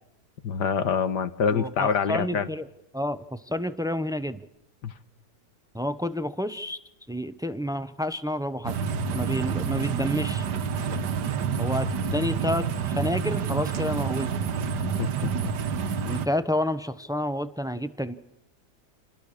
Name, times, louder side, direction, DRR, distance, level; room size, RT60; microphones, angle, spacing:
voice 1, 0.4-2.5 4.8-4.9 15.0-15.3, left 6 dB, 85° left, 12 dB, 1.9 m, -25 dB
voice 2, 1.5-2.7 2.9-4.4 5.7-6.8 7.1-8.8 9.1-10.4 11.6-14.3 16.0-18.1, left 1 dB, 5° right, 12 dB, 0.4 m, -29 dB
sound 1, 8.6-16.3, right 6 dB, 80° right, 1.7 m, -28 dB
28.5 x 20.5 x 6.5 m, 0.85 s
omnidirectional pair, 1.8 m